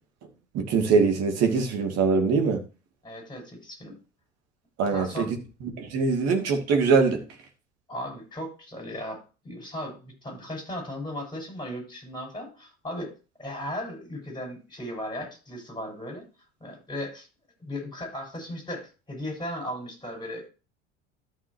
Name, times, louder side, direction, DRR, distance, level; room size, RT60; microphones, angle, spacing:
voice 1, 0.5-2.6 4.8-5.3 5.6-7.2, right 5 dB, 45° right, 2.5 m, -23 dB
voice 2, 3.0-4.0 4.8-5.3 7.9-13.1 13.4-16.2 16.6-17.3 17.6-20.5, left 1 dB, 10° left, 6.1 m, -36 dB
13.5 x 6.4 x 2.9 m
figure-of-eight pair, 75°, 36 cm